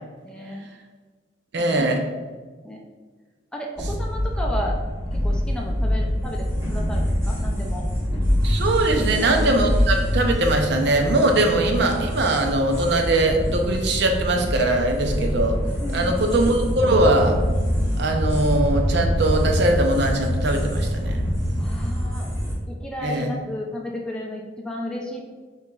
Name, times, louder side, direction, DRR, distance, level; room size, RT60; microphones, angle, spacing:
voice 1, 0.2-0.7 1.6-2.0 2.6-2.8 3.5-4.8 5.1-7.9 9.2-9.4 15.8-16.1 21.6-22.3 22.7-25.2, left 1 dB, 5° left, -1 dB, 0.4 m, -33 dB
voice 2, 1.5-2.0 8.4-15.6 15.9-17.4 18.0-21.2 23.0-23.3, right 2 dB, 65° right, 4 dB, 0.6 m, -21 dB
sound 1, 3.8-22.5, equal, 15° right, 1.3 m, -25 dB
5.6 x 4.0 x 2.4 m, 1.4 s
head